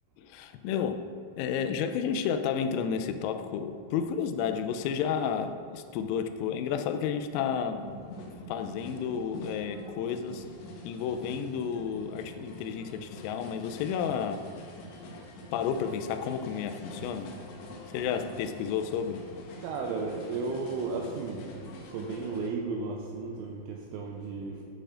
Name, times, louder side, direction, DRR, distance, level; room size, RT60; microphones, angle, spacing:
voice 1, 0.2-1.1 1.4-7.8 8.5-10.5 10.8-14.4 15.5-17.3 17.9-19.3, left 7 dB, 85° left, 8 dB, 3.3 m, -31 dB
sound 1, 7.7-22.5, left 1 dB, 70° left, 2.7 m, -46 dB
voice 2, 19.6-21.5 21.9-24.6, right 4 dB, 85° right, 0 dB, 2.8 m, -34 dB
11.5 x 8.9 x 2.5 m, 2.2 s
omnidirectional pair, 5.9 m